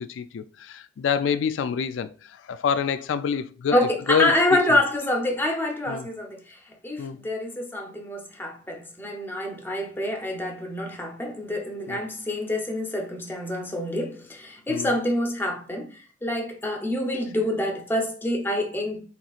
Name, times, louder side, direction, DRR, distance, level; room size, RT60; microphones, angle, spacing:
voice 1, 0.0-2.1 2.5-3.8 4.1-4.3 5.9-6.1 7.0-7.2 11.9-12.0 14.7-14.9, left 7 dB, 90° left, 0.3 m, -26 dB
voice 2, 3.7-19.0, left 1 dB, 10° left, 0.8 m, -27 dB
4.4 x 3.9 x 2.4 m
head